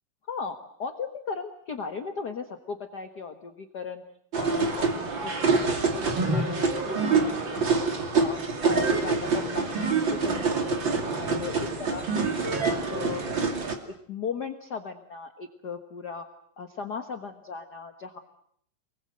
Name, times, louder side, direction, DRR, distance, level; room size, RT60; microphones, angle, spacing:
voice 1, 0.3-4.0 4.4-4.9 5.2-7.3 7.6-7.8 8.1-10.8 11.2-11.5 11.8-12.4 12.7-13.2 13.9-16.3 16.6-18.2, left 5 dB, 50° left, 7 dB, 1.2 m, -37 dB
sound 1, 4.3-13.8, right 4 dB, 35° right, 3.0 m, -26 dB
29.0 x 21.5 x 7.8 m, 0.69 s
omnidirectional pair, 4.0 m